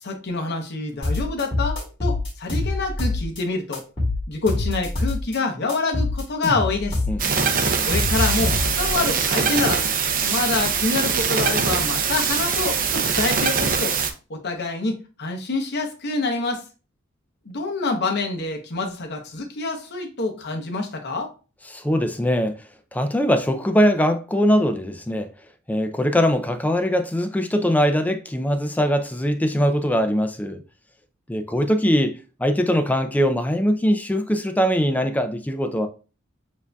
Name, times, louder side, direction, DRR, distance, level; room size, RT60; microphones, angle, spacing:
voice 1, 0.0-3.8 4.3-7.0 7.8-9.8 10.2-14.0 14.3-16.6 17.5-21.3, left 3 dB, 55° left, 0.8 m, -26 dB
sound 1, 1.0-3.4 3.7-5.4 5.7-8.9, left 2 dB, 25° left, 1.9 m, -25 dB
voice 2, 7.1-7.8 21.7-22.6 22.9-25.3 25.7-30.6 31.3-35.9, equal, 10° left, 0.3 m, -21 dB
sound 2, 7.2-14.1, right 6 dB, 45° right, 0.5 m, -22 dB
7.2 x 2.6 x 2.3 m
head